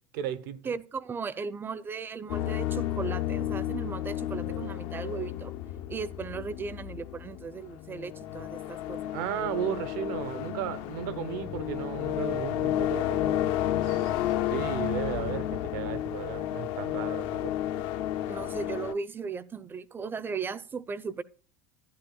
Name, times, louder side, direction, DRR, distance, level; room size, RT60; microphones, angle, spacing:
voice 1, 0.1-0.7 9.1-13.5 13.8-14.1 14.5-17.5, right 9 dB, 75° right, 1.1 m, -35 dB
voice 2, 0.6-5.5 5.9-9.1 18.3-21.2, right 5 dB, 20° right, 0.6 m, -36 dB
sound 1, 2.3-18.9, left 12 dB, 60° left, 0.7 m, -32 dB
12.5 x 10.5 x 2.3 m
supercardioid pair, 125°, 10 cm